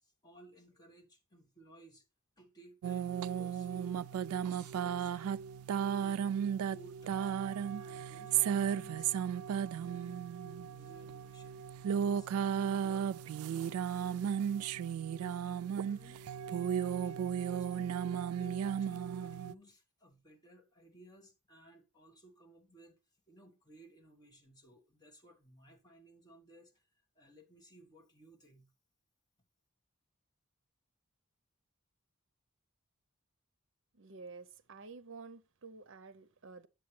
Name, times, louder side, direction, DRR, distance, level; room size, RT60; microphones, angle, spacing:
voice 1, 0.0-2.0 2.4-5.4 5.8-7.3 7.7-9.2 9.7-13.1 13.4-14.4 15.1-23.0 23.3-26.9 27.1-28.7, right 1 dB, 15° left, 1.5 m, -59 dB
sound 1, 2.8-19.5, right 8 dB, 80° right, 0.3 m, -35 dB
voice 2, 33.9-36.7, right 4 dB, 55° right, 0.7 m, -51 dB
8.4 x 7.5 x 3.2 m
head